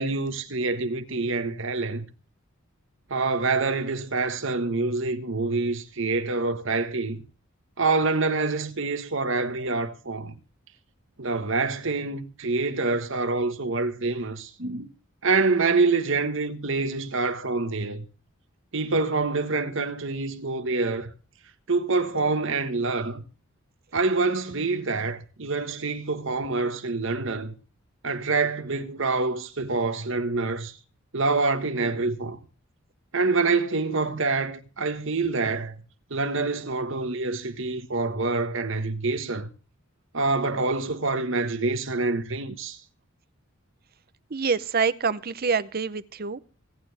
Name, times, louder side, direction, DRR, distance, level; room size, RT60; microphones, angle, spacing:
voice 1, 0.0-2.0 3.1-7.2 7.8-10.3 11.2-14.9 15.2-18.0 18.7-21.1 21.7-23.2 23.9-27.5 28.0-30.8 31.1-32.4 33.1-35.7 36.1-39.5 40.1-42.8, right 3 dB, 65° right, 1.4 m, -26 dB
voice 2, 44.3-46.4, right 5 dB, 45° right, 0.7 m, -26 dB
25.0 x 9.4 x 3.4 m
head